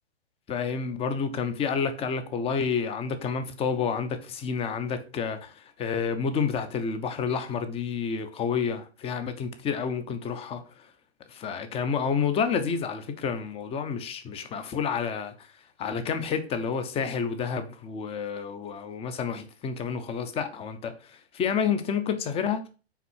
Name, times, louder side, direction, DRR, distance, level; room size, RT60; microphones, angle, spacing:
voice 1, 0.5-10.9 11.3-15.5 15.8-22.7, left 6 dB, 20° left, 0.9 m, -29 dB
5.8 x 4.7 x 6.3 m
hypercardioid pair, 135°, 32 cm